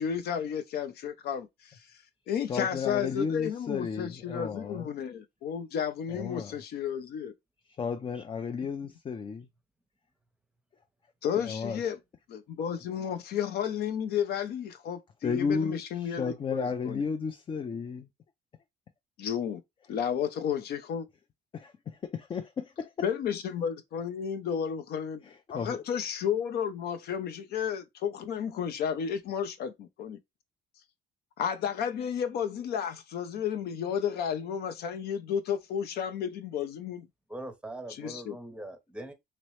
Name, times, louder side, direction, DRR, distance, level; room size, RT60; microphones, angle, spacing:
voice 1, 0.0-1.8 2.3-7.3 11.2-12.0 12.3-17.0 19.2-19.6 19.9-21.0 23.0-25.2 25.5-30.2 31.4-37.1 37.9-38.4, left 8 dB, 70° left, 0.7 m, -32 dB
voice 2, 2.5-4.9 6.1-6.5 7.8-9.5 11.4-11.8 15.2-18.1 21.5-22.9 25.2-25.8, left 5 dB, 30° left, 0.4 m, -33 dB
voice 3, 37.3-39.1, right 1 dB, 5° right, 0.7 m, -41 dB
3.1 x 2.9 x 3.1 m
cardioid pair, 110°, 17 cm